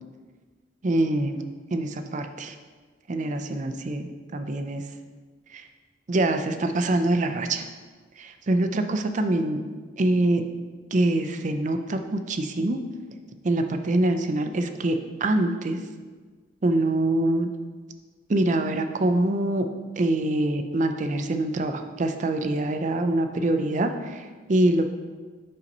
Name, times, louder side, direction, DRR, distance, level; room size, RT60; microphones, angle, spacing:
voice 1, 0.8-1.4 1.7-2.5 3.1-4.8 5.5-5.6 6.1-7.7 8.2-9.6 10.0-10.4 10.9-12.8 13.4-15.8 16.6-17.5 18.3-19.7 20.0-24.9, right 1 dB, 40° right, 7 dB, 0.4 m, -24 dB
5.4 x 4.1 x 5.3 m, 1.4 s
head